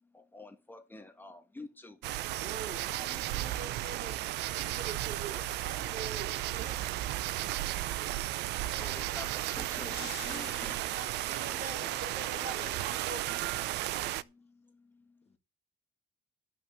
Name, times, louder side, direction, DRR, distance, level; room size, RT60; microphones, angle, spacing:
voice 1, 0.0-2.0 7.6-7.7 8.2-11.0 11.3-11.6 13.9-15.3, left 3 dB, 10° left, 1.6 m, -49 dB
sound 1, 2.0-14.2, right 15 dB, 85° right, 0.7 m, -34 dB
voice 2, 2.4-4.2 4.5-7.0 10.9-13.5, right 4 dB, 50° right, 3.2 m, -44 dB
sound 2, 9.1-12.2, left 19 dB, 85° left, 0.6 m, -51 dB
voice 3, 11.8-13.0 15.2-15.4, left 6 dB, 35° left, 2.4 m, -52 dB
13.5 x 6.1 x 7.3 m
cardioid pair, 110°, 17 cm